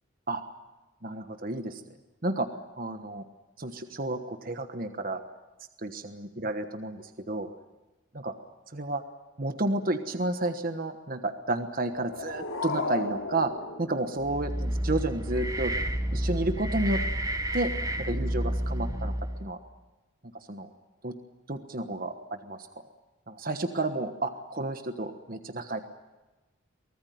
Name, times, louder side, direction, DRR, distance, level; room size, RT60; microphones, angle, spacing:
voice 1, 1.0-1.8 2.2-2.5 2.8-3.3 3.6-5.2 5.8-7.5 8.1-8.3 8.7-9.0 9.4-13.5 13.8-15.7 16.1-17.0 17.5-17.7 18.0-19.1 19.4-19.6 20.3-20.7 21.0-21.2 21.5-22.7 23.3-25.8, right 2 dB, 45° right, 7 dB, 1.3 m, -31 dB
sound 1, 11.7-14.7, left 3 dB, 85° left, 3.3 m, -35 dB
sound 2, 14.2-19.5, right 1 dB, 15° right, 1.2 m, -30 dB
24.0 x 19.0 x 9.3 m, 1.1 s
head